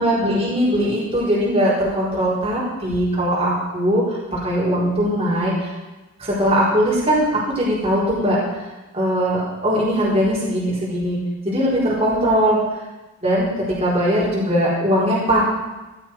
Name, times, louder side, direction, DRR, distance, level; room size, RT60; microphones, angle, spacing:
voice 1, 0.0-5.7 6.2-7.3 7.5-8.4 8.9-11.2 11.4-12.6 13.2-13.5 13.8-15.4, equal, 25° right, -7 dB, 4.5 m, -20 dB
16.0 x 12.5 x 4.8 m, 1.1 s
head